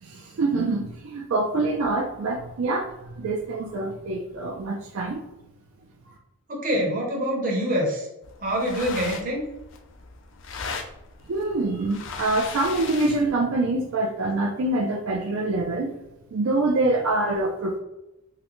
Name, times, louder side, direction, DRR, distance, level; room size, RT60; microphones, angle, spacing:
voice 1, 0.0-5.2 11.3-15.9 16.3-17.8, right 2 dB, 70° right, 2 dB, 0.4 m, -25 dB
voice 2, 6.5-8.1 8.4-9.5, equal, 40° right, -1 dB, 0.8 m, -25 dB
sound 1, 8.2-13.3, left 4 dB, 55° left, 0.4 m, -38 dB
3.7 x 2.1 x 2.9 m, 0.93 s
head